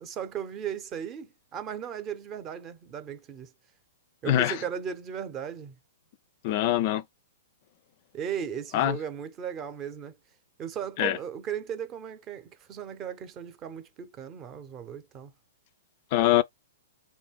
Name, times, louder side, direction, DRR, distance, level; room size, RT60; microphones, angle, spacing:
voice 1, 0.0-3.5 4.2-5.8 8.1-10.2 10.6-15.3, right 8 dB, 25° right, 0.7 m, -36 dB
voice 2, 6.4-7.0 8.7-9.0 11.0-11.2 16.1-16.4, left 13 dB, 45° left, 0.4 m, -23 dB
3.6 x 2.6 x 3.4 m
hypercardioid pair, 135°, 0 cm